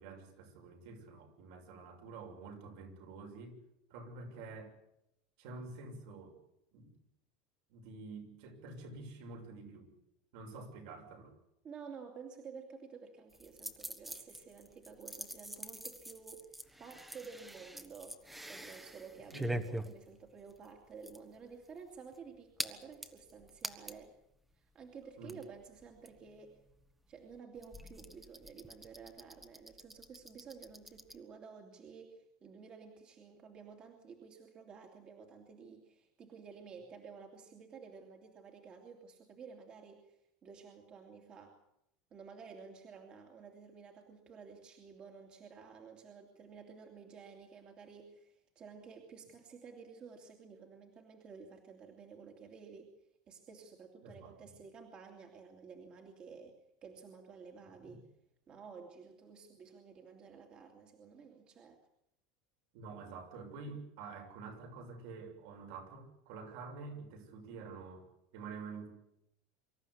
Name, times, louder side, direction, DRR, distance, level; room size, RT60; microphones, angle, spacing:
voice 1, 0.0-3.6 3.9-4.7 5.4-6.4 6.7-6.9 7.7-9.8 10.3-11.3 19.3-19.5 25.2-25.4 54.0-54.5 57.8-57.9 62.7-68.1 68.3-68.9, right 4 dB, 70° right, 3 dB, 6.5 m, -48 dB
voice 2, 11.6-18.2 18.5-24.1 24.6-26.6 27.1-41.6 42.1-52.9 53.3-58.1 58.5-61.8, right 5 dB, 30° right, 3 dB, 2.6 m, -52 dB
sound 1, 13.3-24.1 24.5-24.6 24.8-31.1, right 1 dB, 5° right, 1.4 m, -45 dB
25.0 x 14.0 x 9.7 m, 0.80 s
supercardioid pair, 155°, 3 cm